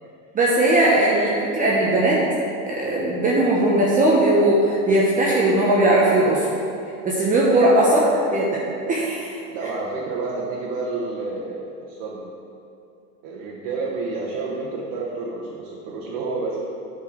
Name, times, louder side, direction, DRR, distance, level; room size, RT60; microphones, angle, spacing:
voice 1, 0.3-2.2 2.7-6.5 7.0-8.0 8.3-9.4, right 1 dB, 20° right, -5 dB, 0.9 m, -19 dB
voice 2, 9.5-12.3 13.2-16.6, right 3 dB, 45° right, -4 dB, 1.4 m, -30 dB
8.6 x 4.6 x 6.2 m, 2.5 s
supercardioid pair, 135°, 46 cm